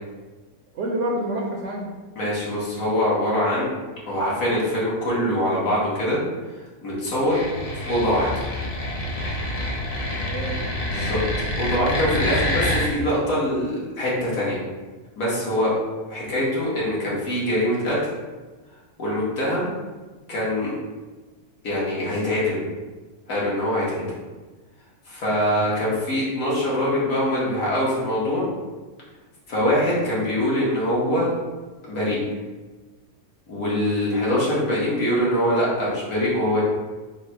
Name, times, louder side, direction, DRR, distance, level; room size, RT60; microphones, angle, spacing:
voice 1, 0.7-1.9 10.0-10.7, right 1 dB, 65° right, -1 dB, 0.8 m, -29 dB
voice 2, 2.1-3.7 4.1-6.2 6.8-7.4 7.9-8.3 10.9-11.2 11.6-14.6 15.2-15.7 16.1-18.1 19.0-19.7 20.3-20.7 21.6-22.6 23.3-24.1 25.1-28.5 29.5-31.3 31.8-32.2 33.5-36.6, equal, 65° left, -7 dB, 1.5 m, -23 dB
sound 1, 7.2-12.9, left 1 dB, 50° left, 0.4 m, -27 dB
4.0 x 2.0 x 4.2 m, 1.3 s
omnidirectional pair, 1.6 m